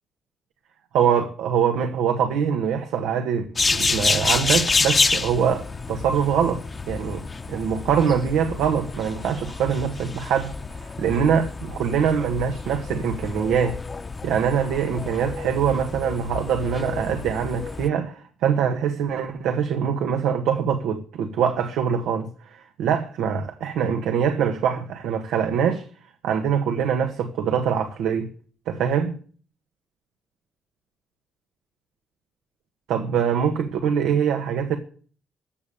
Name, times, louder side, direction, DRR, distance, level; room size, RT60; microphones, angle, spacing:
voice 1, 0.9-6.6 6.9-7.2 7.5-13.8 14.2-25.9 26.2-28.3 28.7-29.1 32.9-34.8, right 7 dB, 85° right, 1.6 m, -23 dB
sound 1, 3.6-17.9, left 4 dB, 30° left, 1.0 m, -28 dB
15.0 x 7.0 x 8.8 m
cardioid pair, 90°, 0 cm